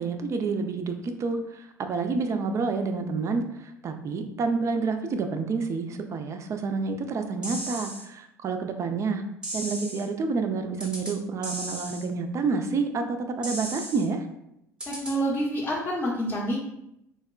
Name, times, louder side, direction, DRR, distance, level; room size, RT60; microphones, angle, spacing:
voice 1, 0.0-9.2 9.5-14.2, right 4 dB, 30° right, 6 dB, 0.4 m, -29 dB
sound 1, 7.4-8.0 9.4-10.0 10.8-11.1 11.4-12.0 13.4-14.0 14.8-15.1, right 1 dB, 10° right, 0.8 m, -35 dB
voice 2, 14.9-16.6, right 1 dB, 20° left, -5 dB, 0.7 m, -27 dB
3.9 x 2.1 x 2.3 m, 0.82 s
figure-of-eight pair, 60°, 9 cm